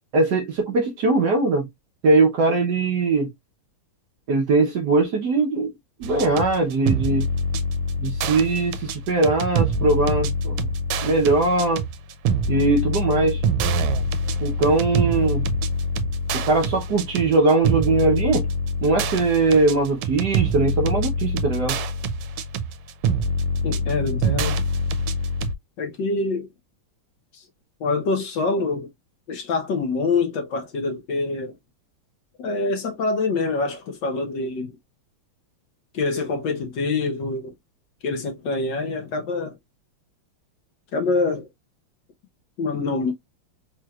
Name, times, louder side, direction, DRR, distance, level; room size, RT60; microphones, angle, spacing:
voice 1, 0.1-1.7 2.0-3.3 4.3-5.7 6.0-7.2 8.0-10.6 11.0-11.8 12.5-13.4 14.4-15.5 16.3-18.5 18.8-21.8, right 3 dB, 60° right, 1.2 m, -20 dB
sound 1, 6.0-25.5, right 1 dB, 85° right, 1.6 m, -25 dB
voice 2, 23.6-24.6 25.8-26.5 27.3-27.4 27.8-28.9 29.3-31.6 32.4-34.7 35.9-37.5 38.0-39.6 40.9-41.5 42.6-43.1, left 3 dB, 60° left, 1.4 m, -25 dB
4.4 x 3.0 x 2.3 m
omnidirectional pair, 2.4 m